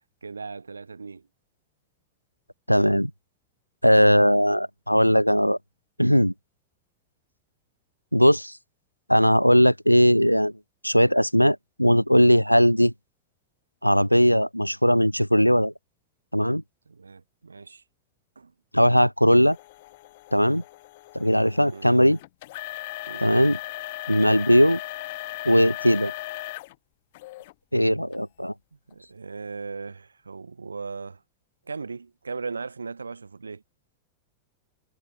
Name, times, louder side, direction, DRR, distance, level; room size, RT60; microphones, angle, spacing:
voice 1, 0.2-1.2 16.9-17.8 18.4-18.5 21.7-21.9 23.1-23.3 28.9-31.2 31.7-33.6, right 4 dB, 75° right, 2.7 m, -37 dB
voice 2, 2.7-3.1 3.8-5.6 6.0-6.3 8.1-8.5 9.1-10.5 10.8-12.9 13.8-15.7 16.3-16.6 18.7-19.6 20.3-20.6 21.1-22.2 23.2-23.6 24.1-24.8 25.4-26.1 27.7-28.5, equal, 90° left, 0.7 m, -19 dB
sound 1, 19.3-26.7 27.1-27.5 28.1-28.2 28.9-29.0, left 19 dB, 50° left, 4.9 m, -38 dB
figure-of-eight pair, 90°, 0 cm